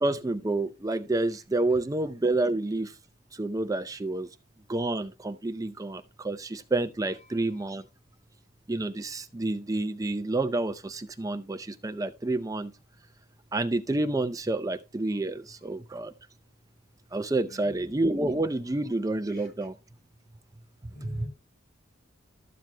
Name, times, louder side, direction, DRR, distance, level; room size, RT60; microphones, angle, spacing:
voice 1, 0.0-3.0 3.3-4.3 4.7-7.8 8.7-12.7 13.5-16.1 17.1-19.7 21.0-21.3, right 2 dB, 20° right, 0.5 m, -29 dB
voice 2, 7.3-7.6 9.3-9.4 15.1-15.2 17.4-17.8 19.3-19.5 20.9-21.3, left 1 dB, 55° left, 6.3 m, -48 dB
13.0 x 12.0 x 2.2 m
head